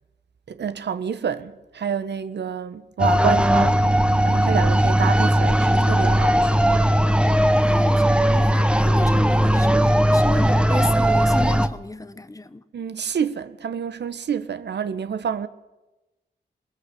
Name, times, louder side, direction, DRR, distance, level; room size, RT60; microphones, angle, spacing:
voice 1, 0.5-3.9 4.2-6.7 12.7-15.5, right 7 dB, 75° right, 1.4 m, -28 dB
sound 1, 3.0-11.7, equal, 5° right, 1.2 m, -18 dB
voice 2, 7.5-12.6, left 2 dB, 20° left, 1.4 m, -33 dB
22.0 x 21.0 x 8.5 m
cardioid pair, 80°, 18 cm